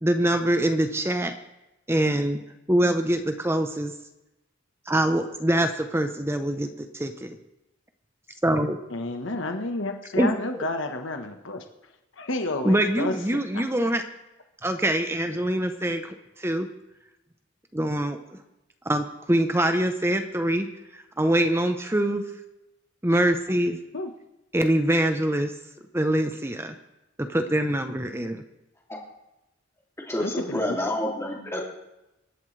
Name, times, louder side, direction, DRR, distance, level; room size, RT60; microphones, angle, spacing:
voice 1, 0.0-1.3 1.9-2.4 2.7-3.9 4.9-7.4 8.4-8.8 10.2-10.3 12.6-14.0 14.6-16.7 17.7-18.2 18.8-20.7 20.9-22.2 23.0-23.8 24.5-25.5 25.9-26.7 27.2-28.4, right 1 dB, 10° right, 7 dB, 0.8 m, -24 dB
voice 2, 8.9-11.6 12.2-13.1 13.5-13.6 15.9-16.0 23.9-24.1 30.2-30.8, left 2 dB, 70° left, 5 dB, 1.3 m, -30 dB
voice 3, 30.1-31.6, left 1 dB, 15° left, -2 dB, 2.8 m, -28 dB
23.5 x 11.0 x 3.3 m, 0.95 s
head